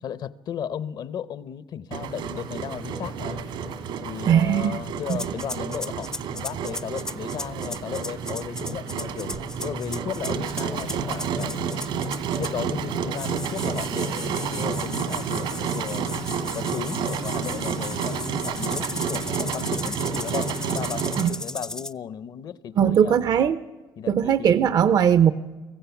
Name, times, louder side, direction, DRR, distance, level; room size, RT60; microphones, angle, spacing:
voice 1, 0.0-3.4 4.0-11.7 12.3-16.2 16.5-23.3 24.0-24.7, left 9 dB, 60° left, 0.9 m, -35 dB
Engine, 1.9-21.3, right 6 dB, 80° right, 2.4 m, -30 dB
voice 2, 4.3-4.8 5.1-5.3 21.2-21.3 22.8-23.6 24.1-25.3, right 8 dB, 55° right, 0.7 m, -19 dB
sound 1, 5.0-12.7 13.1-21.9, left 1 dB, 10° left, 0.5 m, -36 dB
24.5 x 15.5 x 7.1 m
cardioid pair, 115°, 8 cm